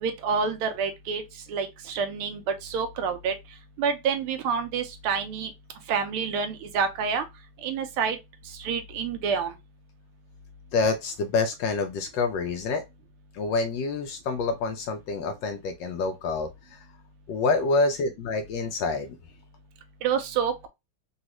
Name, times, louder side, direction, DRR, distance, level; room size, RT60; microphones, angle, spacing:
voice 1, 0.0-1.2 1.5-3.3 3.8-5.5 5.9-7.2 7.6-8.2 8.5-9.5 20.0-20.7, right 6 dB, 85° right, 1.5 m, -28 dB
voice 2, 10.7-12.8 13.3-16.8 17.3-19.2, left 3 dB, 75° left, 1.1 m, -27 dB
4.1 x 2.3 x 2.9 m
omnidirectional pair, 2.3 m